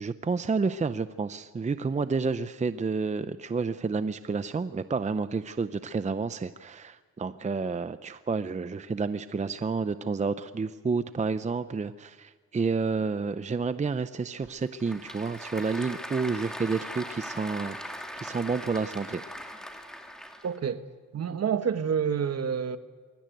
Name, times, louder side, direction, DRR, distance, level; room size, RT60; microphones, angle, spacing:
voice 1, 0.0-17.8 18.2-19.2, right 4 dB, 25° right, 0.6 m, -30 dB
Applause / Crowd, 14.4-20.6, equal, ahead, 2.4 m, -40 dB
voice 2, 20.4-20.8 21.1-22.8, right 7 dB, 55° right, 1.3 m, -28 dB
22.5 x 17.5 x 9.1 m
cardioid pair, 100°, 30 cm